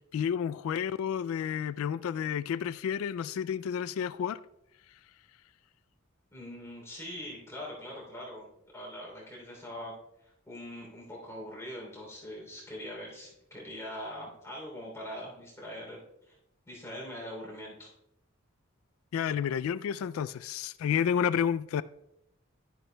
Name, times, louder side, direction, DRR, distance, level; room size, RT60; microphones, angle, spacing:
voice 1, 0.0-4.4 19.1-21.8, left 8 dB, 90° left, 0.3 m, -30 dB
voice 2, 6.3-8.5 8.7-9.9 10.5-16.0 16.3-16.4 16.7-17.9, equal, 15° left, 3.1 m, -42 dB
12.0 x 10.5 x 2.2 m
head